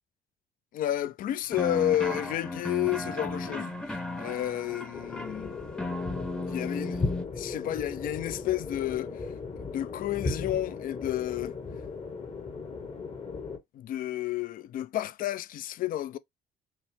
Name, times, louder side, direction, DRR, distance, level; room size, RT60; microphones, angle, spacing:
voice 1, 0.7-5.6 6.5-7.1 7.4-9.3 9.6-11.5 13.7-16.2, left 13 dB, 55° left, 0.4 m, -31 dB
sound 1, 1.5-7.2, left 2 dB, 5° left, 0.7 m, -35 dB
sound 2, 4.9-13.6, left 4 dB, 35° left, 1.1 m, -36 dB
5.7 x 2.1 x 3.2 m
cardioid pair, 110°, 17 cm